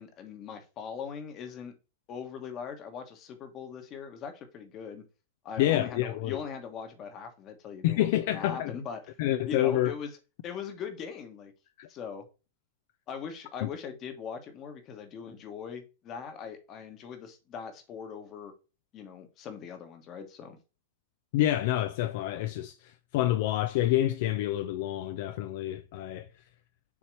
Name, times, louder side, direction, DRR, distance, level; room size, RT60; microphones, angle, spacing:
voice 1, 0.0-1.7 2.1-5.0 5.4-9.0 9.5-10.1 10.4-11.5 11.9-12.3 13.1-18.5 18.9-20.6, left 7 dB, 30° left, 1.2 m, -40 dB
voice 2, 5.6-6.4 7.8-8.7 9.2-9.9 11.8-11.9 13.6-13.7 21.3-26.3, left 13 dB, 55° left, 0.4 m, -28 dB
7.1 x 2.9 x 4.5 m
supercardioid pair, 160°, 0 cm